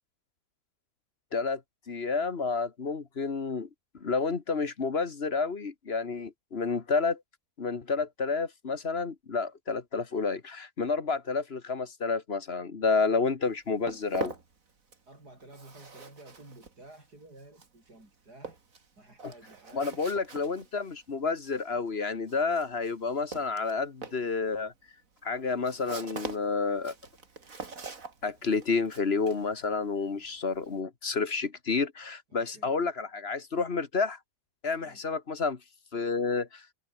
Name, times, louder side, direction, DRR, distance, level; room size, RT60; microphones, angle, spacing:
voice 1, 1.9-3.7 3.9-7.2 7.6-14.3 19.7-24.7 25.2-26.9 28.2-34.2 34.6-35.6 35.9-36.6, left 4 dB, 40° left, 1.6 m, -30 dB
Walk footsteps, 13.4-15.2 15.4-30.8, right 4 dB, 55° right, 3.0 m, -44 dB
voice 2, 15.1-18.6 18.9-20.0 32.3-32.7 34.7-35.0, right 2 dB, 70° right, 8.2 m, -52 dB
omnidirectional pair, 1.7 m